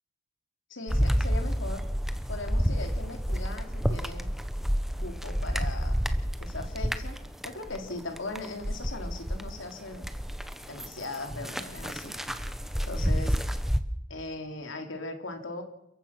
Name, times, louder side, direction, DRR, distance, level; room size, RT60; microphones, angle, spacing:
voice 1, 0.7-1.8 2.3-4.3 5.0-6.0 6.4-10.1 10.7-12.1 12.9-13.4 14.1-15.6, left 2 dB, 85° left, 5 dB, 3.3 m, -39 dB
sound 1, 0.9-9.5 9.8-13.8, equal, ahead, 1.0 m, -29 dB
29.5 x 14.5 x 6.0 m, 0.80 s
head